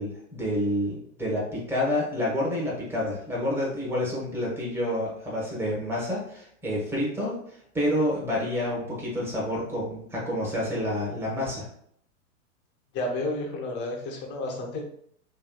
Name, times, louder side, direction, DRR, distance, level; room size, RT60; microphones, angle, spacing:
voice 1, 0.0-7.4 7.7-11.6, left 1 dB, 5° right, -5 dB, 1.0 m, -28 dB
voice 2, 12.9-14.8, left 2 dB, 25° left, 0 dB, 0.7 m, -31 dB
3.0 x 3.0 x 2.2 m, 0.67 s
hypercardioid pair, 120°, 42 cm